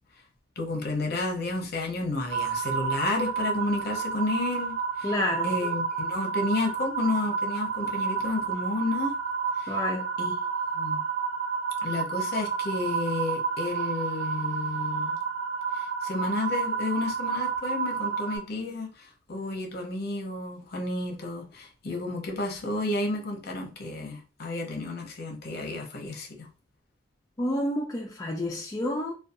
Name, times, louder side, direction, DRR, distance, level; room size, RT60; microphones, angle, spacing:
voice 1, 0.6-5.2 5.4-9.1 9.6-9.8 10.2-10.3 10.7-11.0 11.8-15.2 15.7-26.5, left 2 dB, 55° left, 0.6 m, -31 dB
sound 1, 2.3-18.4, right 5 dB, 75° right, 1.1 m, -30 dB
voice 2, 5.0-5.5 9.7-10.0 27.4-29.1, left 1 dB, 20° left, 0.3 m, -29 dB
2.5 x 2.2 x 2.5 m
head